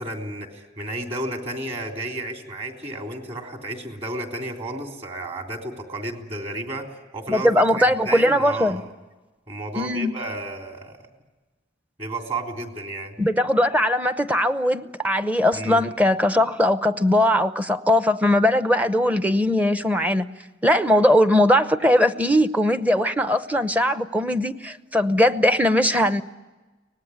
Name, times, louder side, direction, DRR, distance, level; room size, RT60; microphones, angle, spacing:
voice 1, 0.0-6.9 7.1-8.9 9.5-11.0 12.0-13.2 15.5-15.8, right 1 dB, 35° right, 3 dB, 3.4 m, -32 dB
voice 2, 7.3-8.8 9.7-10.1 13.2-20.3 20.6-26.2, left 1 dB, 10° right, 11 dB, 0.8 m, -20 dB
24.5 x 19.0 x 9.9 m, 1.2 s
head